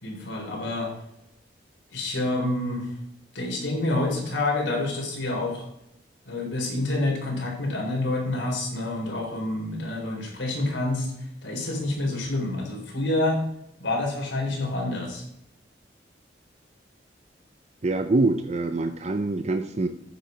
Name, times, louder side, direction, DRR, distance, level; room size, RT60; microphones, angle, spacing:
voice 1, 0.0-0.9 1.9-2.9 3.3-5.7 6.3-11.1 11.4-13.4 13.8-15.2, left 2 dB, 90° left, -1 dB, 3.8 m, -28 dB
voice 2, 17.8-19.9, right 2 dB, 35° right, 8 dB, 0.5 m, -25 dB
9.3 x 7.4 x 5.1 m, 0.81 s
head